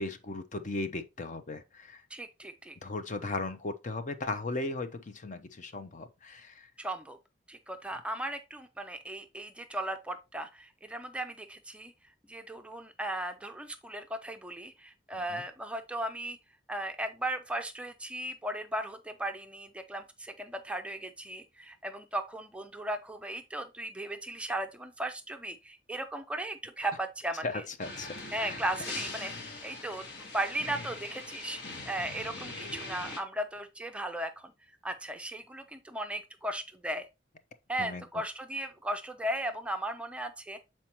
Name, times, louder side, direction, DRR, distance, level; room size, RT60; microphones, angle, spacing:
voice 1, 0.0-2.0 2.8-6.7 15.1-15.4 27.4-28.6 37.8-38.0, left 2 dB, 40° left, 0.6 m, -37 dB
voice 2, 2.1-2.8 6.8-7.2 7.5-11.9 12.3-16.4 16.7-27.6 28.3-31.6 31.9-34.5 34.8-37.1 37.7-40.6, right 1 dB, 5° right, 0.5 m, -36 dB
sound 1, 27.8-33.2, left 2 dB, 60° left, 1.4 m, -41 dB
7.3 x 4.3 x 2.9 m
head